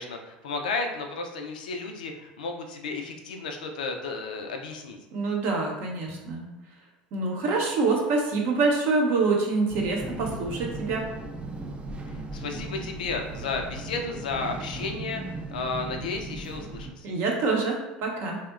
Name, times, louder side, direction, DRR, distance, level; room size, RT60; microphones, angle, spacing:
voice 1, 0.0-5.0 12.1-17.1, left 4 dB, 85° left, 4 dB, 0.3 m, -33 dB
voice 2, 5.1-6.5 7.1-11.1 17.0-18.4, right 3 dB, 55° right, 0 dB, 0.7 m, -26 dB
sound 1, 9.7-16.9, right 2 dB, 25° right, 0.3 m, -37 dB
2.7 x 2.1 x 2.3 m, 0.99 s
hypercardioid pair, 80°, 4 cm